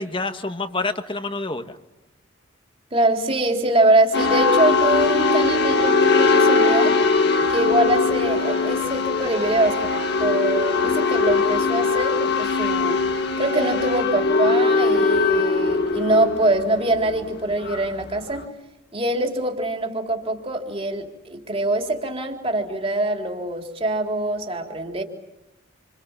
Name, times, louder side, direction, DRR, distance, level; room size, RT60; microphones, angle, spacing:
voice 1, 0.0-1.8, left 3 dB, 25° left, 8 dB, 1.6 m, -27 dB
voice 2, 2.9-7.0 7.5-9.9 10.2-13.0 13.4-18.4 18.9-25.0, right 1 dB, 25° right, 3 dB, 3.8 m, -23 dB
sound 1, 4.1-18.4, left 3 dB, 50° left, 1.9 m, -21 dB
29.0 x 27.5 x 7.4 m, 0.93 s
head